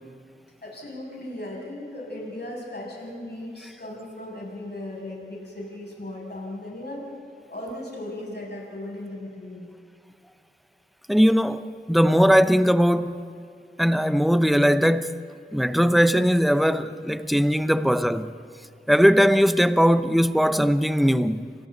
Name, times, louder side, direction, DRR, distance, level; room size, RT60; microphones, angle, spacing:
voice 1, 0.6-7.0 7.5-9.7, left 1 dB, 55° left, 7.0 m, -37 dB
voice 2, 11.1-13.2 13.8-15.2 15.5-18.4 18.9-21.5, equal, ahead, 0.9 m, -20 dB
30.0 x 26.0 x 4.1 m
wide cardioid pair, 70°, 20 cm